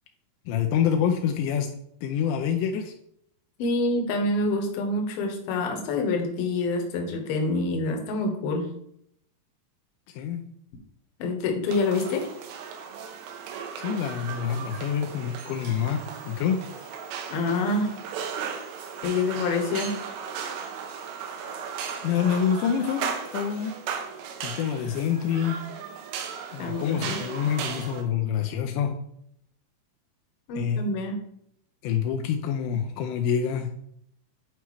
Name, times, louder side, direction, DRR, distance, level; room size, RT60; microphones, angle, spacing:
voice 1, 0.5-1.7 2.0-2.9 10.1-10.4 13.8-16.9 22.0-23.8 24.4-25.6 26.5-29.0 30.6-30.9 31.8-33.7, left 8 dB, 85° left, 4 dB, 2.8 m, -27 dB
voice 2, 3.6-8.7 11.2-12.3 17.3-18.0 19.0-20.0 26.6-27.2 30.5-31.2, left 2 dB, 70° left, 2 dB, 2.6 m, -26 dB
sound 1, 11.7-28.0, right 7 dB, 80° right, 3.0 m, -36 dB
10.0 x 4.6 x 3.1 m, 0.71 s
omnidirectional pair, 5.0 m